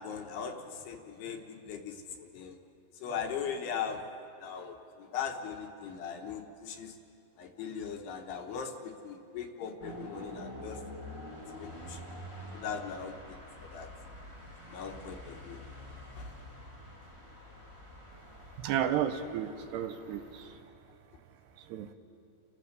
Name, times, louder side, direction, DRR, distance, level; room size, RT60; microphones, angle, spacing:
voice 1, 0.0-2.6 3.0-4.0 4.4-7.0 7.4-10.8 11.5-12.1 12.5-13.9 14.7-15.6 16.2-16.3, left 7 dB, 75° left, 4 dB, 3.1 m, -39 dB
sound 1, 9.8-20.6, equal, 15° right, 1.0 m, -47 dB
voice 2, 18.6-20.4 21.7-21.9, right 10 dB, 80° right, 9 dB, 2.8 m, -32 dB
29.0 x 15.0 x 6.7 m, 2.7 s
omnidirectional pair, 5.0 m